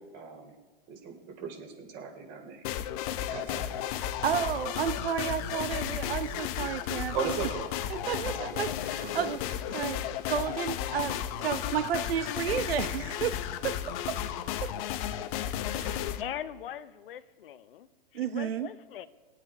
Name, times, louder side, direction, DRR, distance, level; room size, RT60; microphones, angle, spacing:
voice 1, 0.1-0.5 0.9-2.6 3.3-3.7 7.1-7.7 8.0-8.7 9.0-9.3, right 6 dB, 45° right, 3 dB, 3.1 m, -37 dB
sound 1, 2.6-16.2, left 11 dB, 40° left, 0.7 m, -34 dB
voice 2, 3.9-7.1 7.9-13.4 13.6-13.8 14.1-14.2 14.6-14.7 15.7-16.1 18.1-18.7, right 8 dB, 75° right, 11 dB, 0.8 m, -32 dB
voice 3, 16.2-19.1, left 10 dB, 70° left, 12 dB, 0.9 m, -41 dB
21.0 x 8.4 x 4.7 m, 1.3 s
hypercardioid pair, 135°, 29 cm